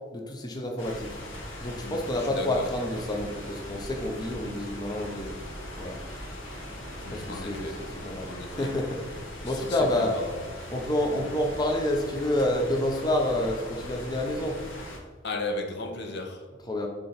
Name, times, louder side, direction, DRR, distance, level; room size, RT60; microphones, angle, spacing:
voice 1, 0.1-1.1 1.6-5.3 5.8-6.0 7.1-7.7 8.0-9.0 9.4-10.1 10.7-14.6 16.7-16.9, left 1 dB, 20° left, 0.6 m, -28 dB
sound 1, 0.8-15.0, left 1 dB, 85° left, 1.4 m, -40 dB
voice 2, 1.8-2.7 7.0-7.8 8.2-8.7 9.4-10.5 11.1-11.2 15.2-16.5, left 2 dB, 60° left, 0.8 m, -36 dB
6.1 x 3.8 x 4.0 m
head